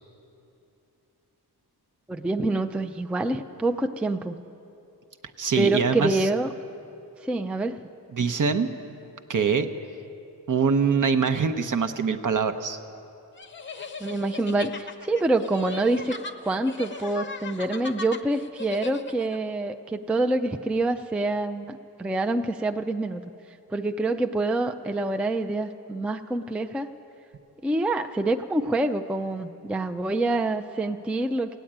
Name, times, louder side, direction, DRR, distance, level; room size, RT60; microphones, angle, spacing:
voice 1, 2.1-4.4 5.6-6.5 7.2-7.8 14.0-16.1 16.4-23.2 23.7-26.9 27.6-31.6, right 2 dB, 5° right, 6 dB, 0.3 m, -26 dB
voice 2, 5.4-6.2 8.1-8.7 9.3-9.7 10.5-12.8, right 5 dB, 55° right, 9 dB, 0.8 m, -23 dB
sound 1, 13.4-19.4, left 3 dB, 30° left, 0.6 m, -38 dB
16.0 x 9.2 x 8.7 m, 2.8 s
wide cardioid pair, 110°, 38 cm